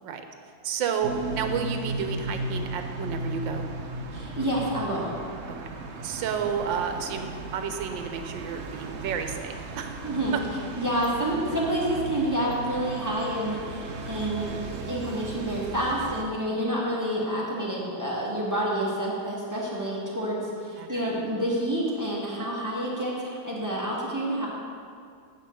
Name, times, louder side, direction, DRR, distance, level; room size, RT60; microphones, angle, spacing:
voice 1, 0.6-3.7 6.0-9.9 10.3-10.4 16.5-16.6 20.8-21.2, right 7 dB, 75° right, 6 dB, 1.5 m, -31 dB
sound 1, 1.0-16.2, right 2 dB, 55° right, 0.8 m, -36 dB
voice 2, 4.1-5.1 10.0-10.3 10.8-24.5, right 1 dB, 10° right, -5 dB, 1.5 m, -28 dB
9.1 x 5.3 x 7.9 m, 2.3 s
omnidirectional pair, 2.1 m